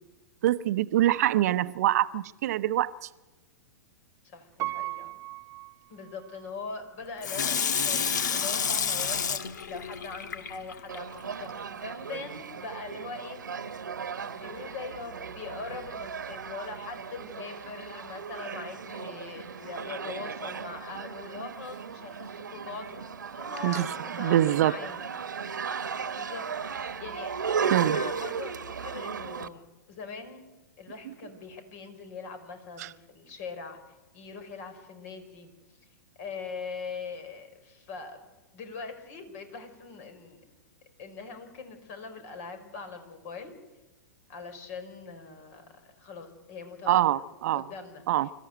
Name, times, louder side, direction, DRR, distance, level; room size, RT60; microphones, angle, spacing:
voice 1, 0.4-3.1 23.6-23.8 24.2-24.8 27.7-28.0 32.8-32.9 46.9-47.7 48.1-48.3, right 13 dB, 55° right, 14 dB, 0.8 m, -24 dB
voice 2, 4.2-5.1 5.9-13.4 14.4-25.1 26.1-26.5 27.0-30.4 30.8-35.5 36.2-38.2 38.5-40.4 41.0-43.5 44.3-47.0 47.5-48.0, left 4 dB, 50° left, 8 dB, 4.9 m, -41 dB
Piano, 4.6-6.6 7.1-7.2, right 18 dB, 30° right, 0.9 m, -37 dB
Water tap faucet / Sink (filling or washing), 7.2-11.0 11.5-11.6, left 6 dB, 75° left, 1.4 m, -29 dB
sound 1, 10.9-29.5, right 6 dB, 80° right, 1.2 m, -36 dB
26.0 x 14.5 x 7.9 m, 1.1 s
hypercardioid pair, 105°, 10 cm